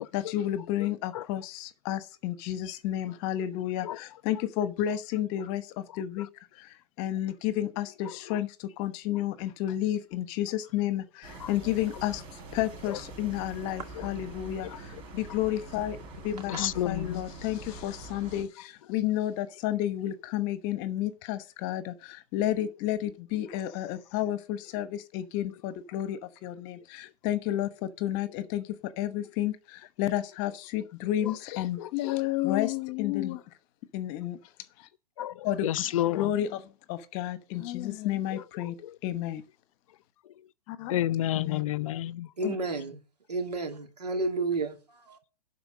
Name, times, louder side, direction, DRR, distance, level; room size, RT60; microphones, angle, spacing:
voice 1, 0.0-6.3 6.6-12.2 12.5-16.0 16.2-33.4 33.9-34.4 34.8-34.9 35.4-38.8 39.0-39.4 40.7-40.9 41.3-41.6 42.4-42.6, left 12 dB, 40° left, 1.1 m, -31 dB
sound 1, 11.2-18.4, right 3 dB, 30° right, 4.0 m, -44 dB
voice 2, 16.5-17.2 31.5-32.2 35.2-36.3 40.9-42.3, left 13 dB, 55° left, 0.5 m, -30 dB
voice 3, 42.4-43.0 43.3-44.7, right 3 dB, 85° right, 2.5 m, -30 dB
11.5 x 4.5 x 6.3 m
hypercardioid pair, 115°, 20 cm